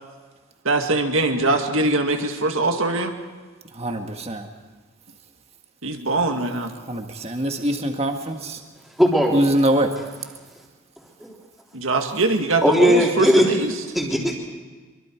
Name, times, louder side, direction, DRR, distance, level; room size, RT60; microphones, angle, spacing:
voice 1, 0.6-3.2 5.8-6.7 11.7-13.8, right 2 dB, 75° right, 4 dB, 2.0 m, -22 dB
voice 2, 3.8-4.5 6.9-8.6 9.3-9.9, right 1 dB, 30° right, 4 dB, 1.6 m, -23 dB
voice 3, 9.0-9.4 11.2-11.3 12.6-13.5 13.9-14.4, equal, ahead, -2 dB, 3.6 m, -18 dB
25.0 x 24.0 x 4.6 m, 1.4 s
head